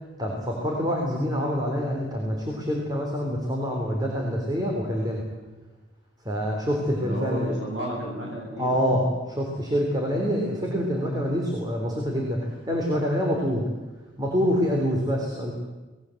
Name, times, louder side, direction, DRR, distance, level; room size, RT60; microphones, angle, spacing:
voice 1, 0.2-5.2 6.2-7.5 8.6-13.7 14.2-15.5, equal, 20° right, -1 dB, 3.7 m, -26 dB
voice 2, 6.9-9.0, equal, 80° right, -2 dB, 7.4 m, -32 dB
26.0 x 20.0 x 7.9 m, 1.2 s
head